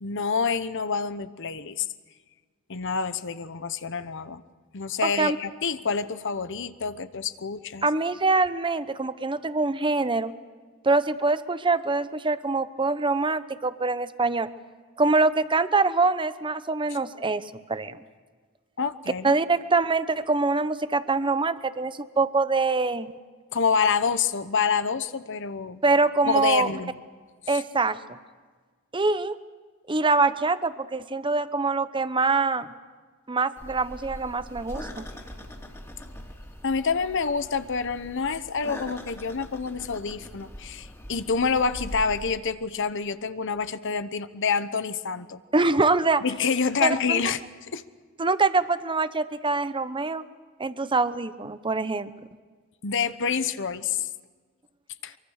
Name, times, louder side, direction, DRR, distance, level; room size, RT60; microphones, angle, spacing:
voice 1, 0.0-1.9 2.7-4.4 4.7-7.9 18.8-19.4 23.5-25.8 26.2-26.9 27.5-27.6 36.6-45.4 46.2-47.4 47.7-47.8 52.8-54.1 55.0-55.1, left 5 dB, 60° left, 13 dB, 1.0 m, -27 dB
voice 2, 5.0-5.4 7.8-10.3 10.8-14.5 15.0-17.4 17.7-18.0 19.2-23.1 25.8-26.7 27.5-28.2 28.9-29.4 29.9-32.7 33.3-35.0 45.5-46.2 46.8-47.2 48.2-50.2 50.6-52.1, right 3 dB, 25° right, 13 dB, 0.9 m, -24 dB
sound 1, 33.6-42.3, equal, 15° left, 2.8 m, -42 dB
24.0 x 24.0 x 6.5 m, 1.5 s
head